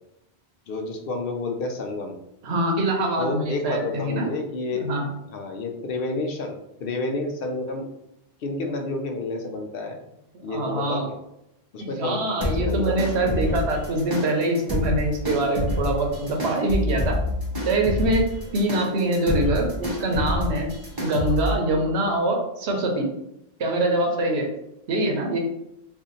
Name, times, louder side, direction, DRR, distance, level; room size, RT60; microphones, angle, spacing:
voice 1, 0.7-2.2 3.2-4.9 5.3-7.9 8.4-10.0 10.4-11.2 11.7-13.7, left 2 dB, 65° left, 3 dB, 0.7 m, -30 dB
voice 2, 2.4-4.3 4.7-5.1 10.5-11.0 11.8-17.2 17.7-20.7 21.0-23.1 23.6-24.5 24.9-25.4, right 1 dB, 85° right, 1 dB, 1.0 m, -24 dB
sound 1, 12.4-21.6, left 1 dB, 25° right, 0.7 m, -28 dB
2.7 x 2.4 x 3.8 m, 0.83 s
omnidirectional pair, 1.1 m